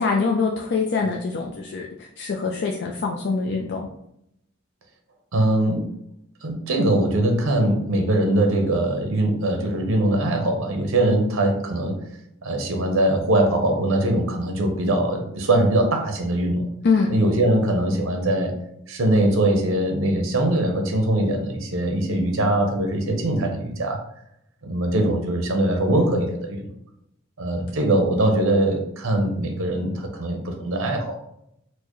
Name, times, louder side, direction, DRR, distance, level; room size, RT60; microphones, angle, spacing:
voice 1, 0.0-3.9 16.8-17.2, left 4 dB, 55° left, 0 dB, 0.4 m, -24 dB
voice 2, 5.3-5.8 6.4-12.0 12.4-16.6 17.1-18.5 18.9-24.0 24.6-26.7 27.4-31.2, right 1 dB, 90° right, 3 dB, 0.7 m, -22 dB
4.4 x 2.1 x 3.0 m, 0.76 s
head